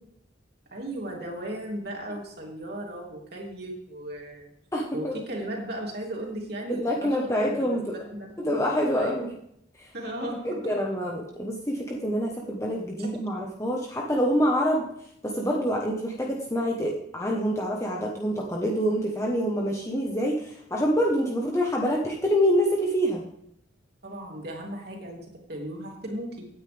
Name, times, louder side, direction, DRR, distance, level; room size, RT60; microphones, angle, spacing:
voice 1, 0.7-4.5 4.9-8.3 8.9-9.3 9.9-10.8 13.0-13.1 24.0-26.5, right 1 dB, 55° right, -1 dB, 3.1 m, -36 dB
voice 2, 4.7-5.1 6.7-7.9 8.4-9.3 9.8-9.9 10.2-14.9 15.2-23.2, equal, 15° left, -1 dB, 1.2 m, -26 dB
17.0 x 9.4 x 3.5 m, 0.74 s
head